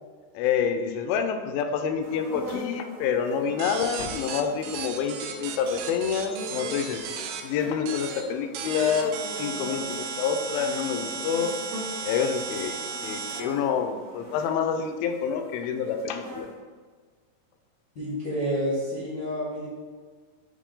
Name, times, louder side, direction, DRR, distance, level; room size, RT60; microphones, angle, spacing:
voice 1, 0.3-7.0 7.4-11.5 12.0-12.8 13.0-16.5, left 7 dB, 80° left, 6 dB, 2.3 m, -27 dB
sound 1, 2.0-16.5, equal, 60° right, 2.1 m, -42 dB
sound 2, 3.6-7.4 7.9-8.2 8.5-13.4, right 6 dB, 85° right, 2.0 m, -35 dB
voice 2, 17.9-19.7, equal, 55° left, -9 dB, 1.1 m, -29 dB
8.4 x 3.3 x 3.8 m, 1.5 s
omnidirectional pair, 4.4 m